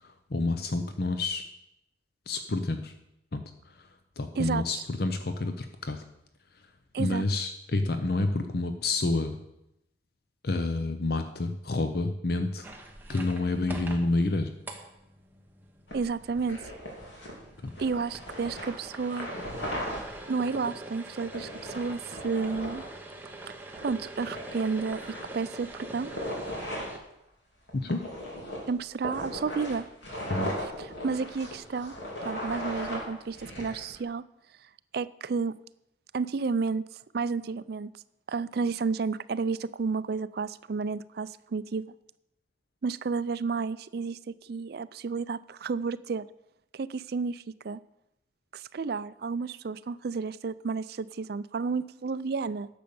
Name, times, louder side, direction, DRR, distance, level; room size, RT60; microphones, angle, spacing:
voice 1, 0.3-1.4 2.3-2.9 3.3-3.4 4.2-6.0 7.0-9.4 10.4-12.6 13.1-14.5 17.6-17.7 27.8-28.0 30.3-30.5, left 2 dB, 50° left, 8 dB, 0.7 m, -28 dB
voice 2, 4.4-4.8 6.9-7.2 15.9-16.6 17.8-19.3 19.7-19.8 20.3-22.8 23.5-23.6 23.8-26.1 28.7-29.8 30.6-31.9 32.2-34.2 34.9-35.5 36.1-36.8 37.1-37.9 38.3-41.8 42.8-46.2 46.7-47.8 48.5-52.7, right 4 dB, 55° right, 16 dB, 0.4 m, -31 dB
sound 1, 12.6-27.0, right 2 dB, 10° right, 1.0 m, -44 dB
sound 2, 15.9-20.0 20.7-20.8 21.2-22.9 23.4-23.5 23.8-23.9 24.2-26.9 27.7-34.0, equal, 70° left, 3.0 m, -37 dB
10.5 x 6.9 x 6.9 m, 0.85 s
head